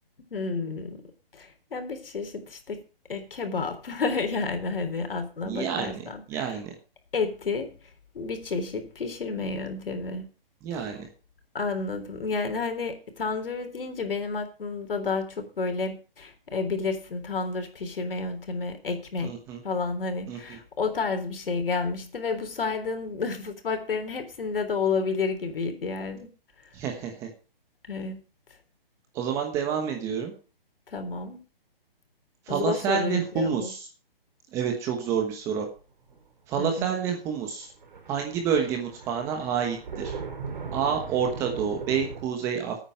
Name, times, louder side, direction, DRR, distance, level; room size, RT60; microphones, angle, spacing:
voice 1, 0.3-1.0 1.3-2.8 3.1-6.6 7.1-7.7 8.1-10.3 10.7-10.9 11.5-19.3 19.6-26.3 27.9-28.2 30.9-31.4 32.5-33.7 36.6-36.9, left 4 dB, 70° left, 7 dB, 3.8 m, -30 dB
voice 2, 5.4-6.7 10.6-11.1 19.2-19.6 20.3-20.4 26.7-27.3 29.1-30.3 32.5-33.9 34.5-35.7 36.5-37.7 38.1-40.2 40.7-42.7, right 7 dB, 10° right, 3 dB, 1.1 m, -28 dB
sound 1, 35.1-35.5 35.8-36.2 37.1-37.3 37.6-42.3, right 5 dB, 50° right, 5.2 m, -39 dB
15.0 x 9.1 x 4.7 m, 0.35 s
hypercardioid pair, 170°, 29 cm